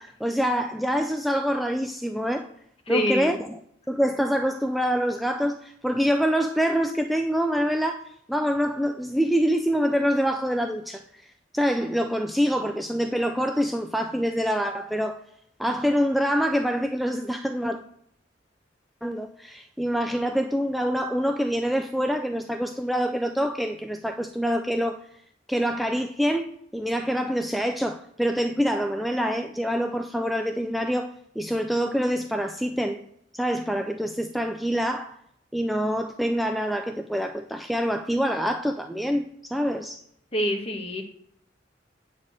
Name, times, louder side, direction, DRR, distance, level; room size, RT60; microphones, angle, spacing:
voice 1, 0.0-2.5 2.9-3.6 3.9-15.2 15.6-17.8 19.0-25.0 25.5-31.1 31.4-33.0 33.3-35.2 35.5-40.0, equal, ahead, 0.4 m, -26 dB
voice 2, 2.9-3.4 40.3-41.0, equal, 35° left, 1.4 m, -26 dB
8.7 x 4.2 x 6.5 m
head